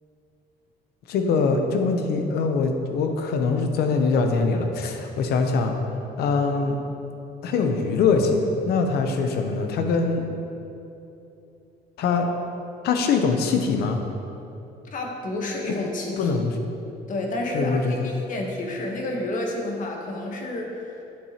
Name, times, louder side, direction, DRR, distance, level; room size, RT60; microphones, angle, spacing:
voice 1, 1.1-5.7 6.2-6.8 7.4-10.2 12.0-12.3 12.8-14.0 16.2-16.5 17.5-18.1, left 4 dB, 70° left, 5 dB, 0.7 m, -23 dB
voice 2, 14.9-16.4 17.1-20.9, left 1 dB, 50° left, 1 dB, 1.1 m, -30 dB
7.8 x 6.8 x 2.9 m, 2.8 s
cardioid pair, 110°, 17 cm